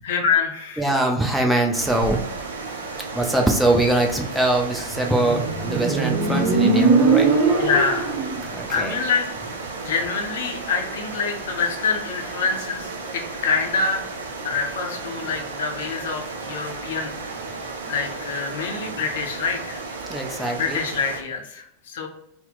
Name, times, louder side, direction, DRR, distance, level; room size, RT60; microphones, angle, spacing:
voice 1, 0.0-1.0 7.6-8.3 8.7-14.1 14.4-17.2 17.9-19.8 20.5-22.1, left 5 dB, 55° left, 3 dB, 0.5 m, -26 dB
voice 2, 0.8-2.2 3.1-7.3 8.4-8.9 20.1-20.8, right 1 dB, 5° right, 1 dB, 0.5 m, -22 dB
sound 1, 1.7-21.2, right 3 dB, 65° right, 0.5 m, -34 dB
Motorcycle, 4.9-8.4, right 4 dB, 40° right, 0.8 m, -20 dB
2.8 x 2.0 x 3.8 m, 0.77 s
figure-of-eight pair, 90°, 0 cm